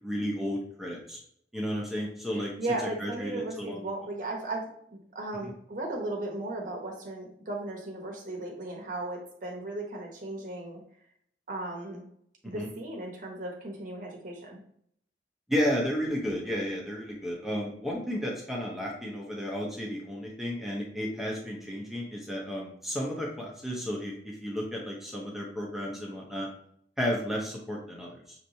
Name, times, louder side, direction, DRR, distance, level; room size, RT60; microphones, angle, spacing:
voice 1, 0.0-1.2 1.5-2.5 3.0-3.8 12.5-12.7 15.5-26.5 27.0-28.5, equal, ahead, -3 dB, 0.8 m, -33 dB
voice 2, 2.3-10.8 11.5-12.0 12.4-14.6, right 2 dB, 50° right, 0 dB, 0.9 m, -36 dB
6.4 x 3.0 x 2.7 m, 0.67 s
head